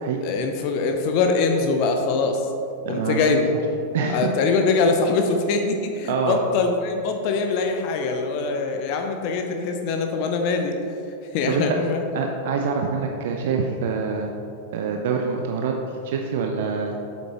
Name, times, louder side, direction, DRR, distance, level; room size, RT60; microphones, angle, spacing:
voice 1, 0.2-2.5 2.8-3.5 4.1-10.8 11.3-12.0, left 4 dB, 45° left, 4 dB, 0.6 m, -23 dB
voice 2, 2.9-3.4 3.9-4.3 6.1-6.4 11.4-11.8 12.1-14.3 14.7-15.7 16.0-17.0, right 5 dB, 55° right, 3 dB, 0.5 m, -25 dB
8.1 x 7.7 x 3.0 m, 2.7 s
figure-of-eight pair, 90°, 0 cm